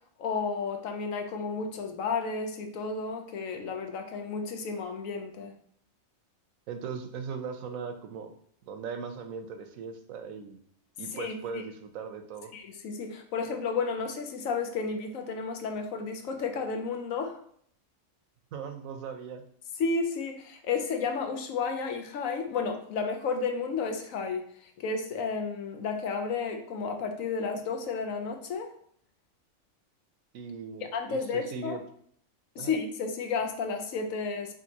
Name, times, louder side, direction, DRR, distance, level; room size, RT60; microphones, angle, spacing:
voice 1, 0.2-5.5 11.1-11.6 12.5-17.4 19.8-28.7 30.8-31.8 32.6-34.5, left 5 dB, 75° left, 5 dB, 1.1 m, -32 dB
voice 2, 6.7-8.3 8.7-10.6 11.0-12.5 18.5-19.4 30.3-31.8 32.6-32.7, right 6 dB, 75° right, 7 dB, 1.0 m, -39 dB
5.1 x 3.5 x 2.8 m, 0.63 s
omnidirectional pair, 1.4 m